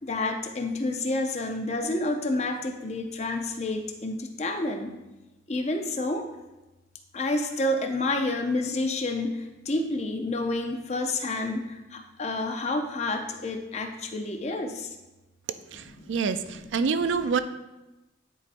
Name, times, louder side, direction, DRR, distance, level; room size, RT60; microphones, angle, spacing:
voice 1, 0.0-4.9 5.5-6.3 7.1-15.0 15.7-16.7, left 2 dB, 35° left, 5 dB, 0.6 m, -29 dB
voice 2, 15.7-17.4, right 5 dB, 80° right, 11 dB, 0.4 m, -27 dB
10.0 x 4.7 x 2.6 m, 1.1 s
head